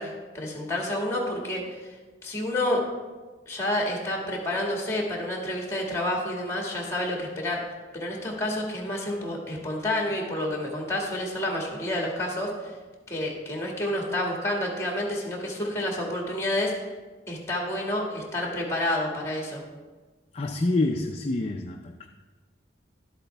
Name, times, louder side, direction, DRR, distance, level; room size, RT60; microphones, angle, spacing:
voice 1, 0.0-2.0 2.2-2.8 3.5-7.6 7.9-12.7 13.1-16.9 17.3-19.6, left 1 dB, 15° left, -1 dB, 1.8 m, -29 dB
voice 2, 20.3-22.1, left 2 dB, 35° left, 3 dB, 0.4 m, -27 dB
12.0 x 8.1 x 3.4 m, 1.3 s
head